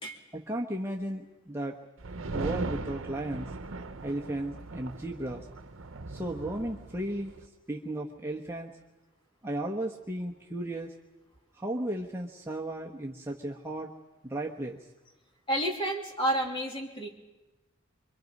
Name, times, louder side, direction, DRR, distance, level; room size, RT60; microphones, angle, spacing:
voice 1, 0.3-1.8 2.3-3.5 4.0-5.5 6.1-7.3 7.7-8.7 9.4-10.9 11.5-13.9 14.2-14.8, right 1 dB, 10° right, -1 dB, 1.1 m, -35 dB
sound 1, 2.0-7.5, right 3 dB, 70° right, 0.9 m, -39 dB
voice 2, 15.5-17.1, right 1 dB, 25° left, 0 dB, 3.0 m, -30 dB
25.5 x 23.0 x 5.4 m, 1.1 s
head